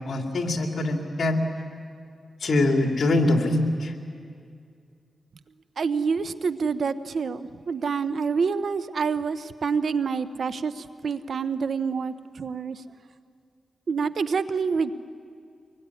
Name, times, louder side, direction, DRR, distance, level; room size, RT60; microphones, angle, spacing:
voice 1, 0.1-1.4 2.4-3.9, left 2 dB, 70° left, 4 dB, 3.0 m, -23 dB
voice 2, 5.8-12.8 13.9-14.9, right 5 dB, 70° right, 13 dB, 1.0 m, -27 dB
25.0 x 21.5 x 9.9 m, 2.3 s
cardioid pair, 60°, 0 cm